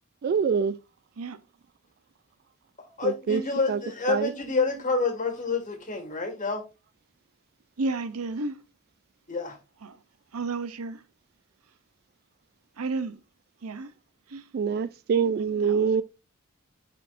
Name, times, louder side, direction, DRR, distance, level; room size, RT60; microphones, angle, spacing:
voice 1, 0.2-0.7 3.0-3.4 3.7-3.8 4.1-4.3 14.5-16.0, right 6 dB, 45° right, 0.3 m, -25 dB
voice 2, 2.8-6.6 9.3-9.6, left 3 dB, 35° left, 1.9 m, -28 dB
voice 3, 7.8-8.6 9.8-10.0 10.3-11.0 12.8-13.2 13.6-13.9 14.3-14.5 15.4-15.8, right 3 dB, 75° right, 0.7 m, -32 dB
10.0 x 4.5 x 2.6 m
head